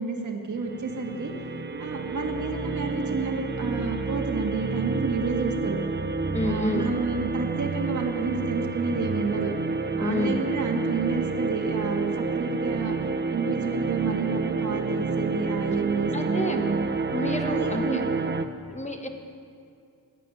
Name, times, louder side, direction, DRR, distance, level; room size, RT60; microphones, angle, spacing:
voice 1, 0.0-1.3 1.8-5.8 6.4-9.5 10.0-13.0 13.3-16.9 17.4-18.2, right 4 dB, 55° right, 1 dB, 1.8 m, -30 dB
sound 1, 0.6-18.5, right 3 dB, 30° right, 0.7 m, -29 dB
voice 2, 6.3-6.9 10.0-10.4 16.1-16.6 17.1-18.0 18.7-19.1, left 1 dB, 20° left, 5 dB, 1.3 m, -29 dB
15.0 x 8.3 x 10.0 m, 2.4 s
wide cardioid pair, 115°, 36 cm